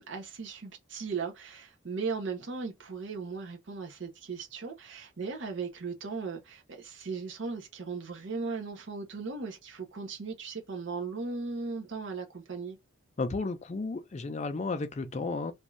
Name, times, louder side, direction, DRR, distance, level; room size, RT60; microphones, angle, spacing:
voice 1, 0.0-12.8, right 4 dB, 60° right, 0.6 m, -37 dB
voice 2, 13.2-15.5, left 3 dB, 30° left, 0.4 m, -33 dB
2.6 x 2.3 x 3.0 m
head